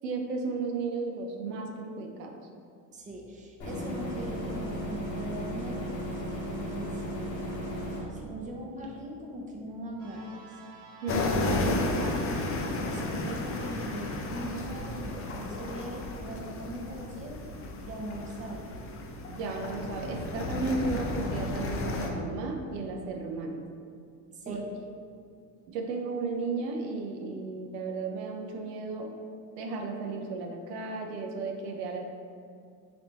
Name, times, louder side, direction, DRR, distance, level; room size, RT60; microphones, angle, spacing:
voice 1, 0.0-2.3 11.0-12.2 19.3-23.6 24.5-24.6 25.7-29.1 29.6-32.1, right 3 dB, 75° right, 2 dB, 0.7 m, -34 dB
voice 2, 2.9-7.4 7.9-10.2 12.8-17.5 17.8-19.0 24.3-24.6, right 1 dB, 15° right, 0 dB, 0.6 m, -40 dB
sound 1, 3.6-8.0, equal, 85° left, 1.2 m, -35 dB
sound 2, 10.0-15.2, right 4 dB, 40° right, 0.9 m, -52 dB
sound 3, 11.1-22.1, left 2 dB, 30° left, 0.5 m, -33 dB
4.0 x 3.3 x 2.9 m, 2.3 s
hypercardioid pair, 75°, 49 cm